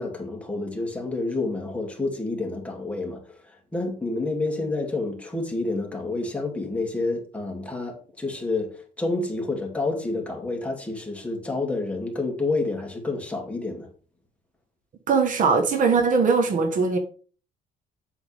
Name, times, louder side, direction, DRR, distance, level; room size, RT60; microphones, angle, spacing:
voice 1, 0.0-13.9, left 2 dB, 10° left, 2.7 m, -29 dB
voice 2, 15.1-17.0, right 4 dB, 50° right, 1.4 m, -20 dB
8.2 x 7.9 x 3.6 m
cardioid pair, 110°, 17 cm